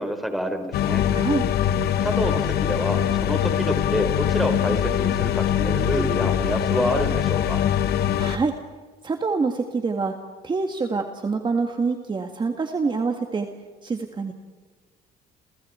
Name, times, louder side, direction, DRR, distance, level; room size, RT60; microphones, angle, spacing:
voice 1, 0.0-1.1 2.0-7.7, equal, ahead, 5 dB, 4.5 m, -27 dB
sound 1, 0.7-8.4, left 10 dB, 70° left, 1.3 m, -23 dB
voice 2, 1.1-1.5 8.1-8.5 9.0-10.2 10.4-13.5 13.8-14.3, right 4 dB, 25° right, 4 dB, 1.9 m, -26 dB
30.0 x 29.0 x 4.5 m, 1.4 s
cardioid pair, 110°, 17 cm